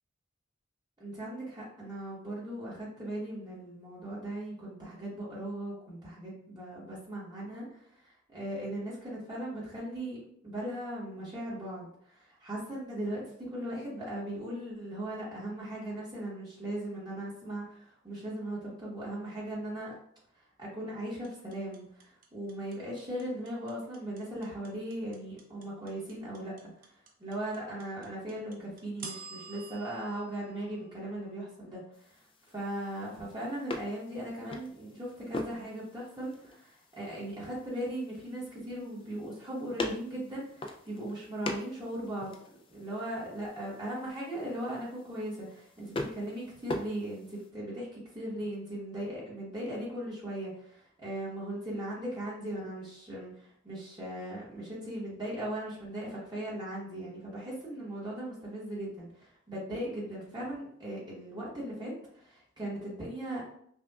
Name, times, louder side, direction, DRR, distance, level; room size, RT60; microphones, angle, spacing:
voice 1, 1.0-7.8 8.3-19.9 20.6-26.7 27.2-32.2 32.5-42.4 42.7-63.5, right 1 dB, 20° right, -7 dB, 1.1 m, -38 dB
sound 1, 21.2-31.4, right 4 dB, 45° right, 0.6 m, -48 dB
sound 2, 31.9-47.5, left 2 dB, 25° left, 0.3 m, -43 dB
5.6 x 2.2 x 2.3 m, 0.66 s
head